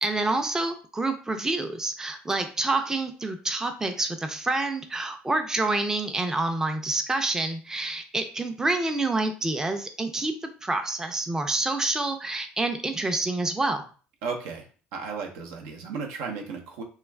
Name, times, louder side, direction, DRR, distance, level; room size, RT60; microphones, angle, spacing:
voice 1, 0.0-10.3 10.6-13.8, right 2 dB, 10° right, 6 dB, 0.4 m, -27 dB
voice 2, 14.2-16.8, right 5 dB, 80° right, 2 dB, 0.6 m, -35 dB
2.3 x 2.3 x 3.2 m, 0.38 s
supercardioid pair, 85°, 4 cm